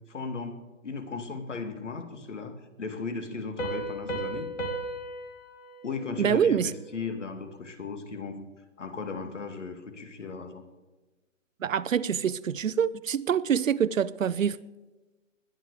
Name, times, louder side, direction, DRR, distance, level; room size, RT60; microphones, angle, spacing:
voice 1, 0.1-4.5 5.8-8.4 8.8-10.6, left 4 dB, 65° left, 2.4 m, -36 dB
Piano, 3.6-7.0, right 2 dB, 90° left, 2.6 m, -36 dB
voice 2, 6.2-6.7 11.6-14.6, right 8 dB, 80° right, 0.8 m, -25 dB
21.0 x 9.4 x 4.9 m
hypercardioid pair, 180°, 38 cm